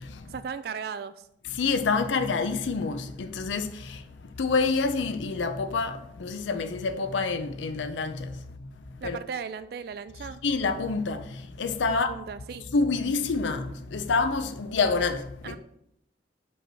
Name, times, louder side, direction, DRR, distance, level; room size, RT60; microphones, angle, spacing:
voice 1, 0.2-1.3 9.0-10.4 11.9-12.7 15.4-15.6, right 6 dB, 55° right, 0.3 m, -37 dB
voice 2, 1.5-4.0 4.4-8.3 9.0-9.2 10.4-12.1 12.7-15.6, left 4 dB, 85° left, 0.5 m, -27 dB
5.4 x 4.4 x 6.2 m
head